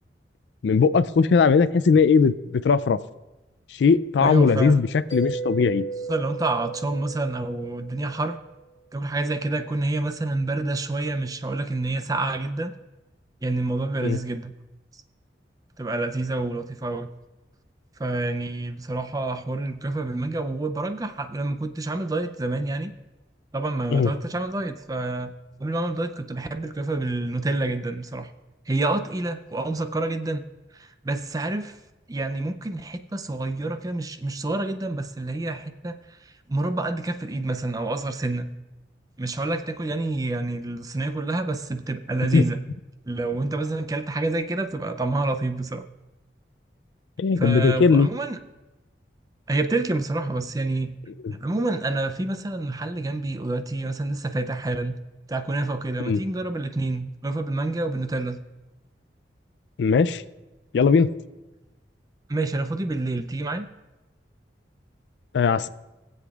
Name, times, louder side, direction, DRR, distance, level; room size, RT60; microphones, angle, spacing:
voice 1, 0.6-3.0 3.7-5.9 14.0-14.2 23.9-24.1 42.3-42.4 47.2-48.1 51.2-51.3 56.1-56.2 59.8-60.2 60.7-61.1 65.3-65.7, left 5 dB, 75° left, 16 dB, 0.4 m, -19 dB
voice 2, 4.2-4.8 6.1-8.4 8.9-12.7 13.4-14.5 14.9-15.0 15.8-17.1 18.0-22.9 23.5-25.3 25.6-28.3 28.7-30.4 30.7-31.8 32.1-38.5 39.2-42.6 43.1-45.8 47.4-48.4 49.5-51.0 51.3-55.0 55.3-58.4 62.3-63.7, right 2 dB, 20° right, 8 dB, 0.4 m, -28 dB
Mallet percussion, 5.1-8.6, right 4 dB, 15° left, 1.9 m, -34 dB
20.0 x 7.8 x 2.4 m, 1.1 s
head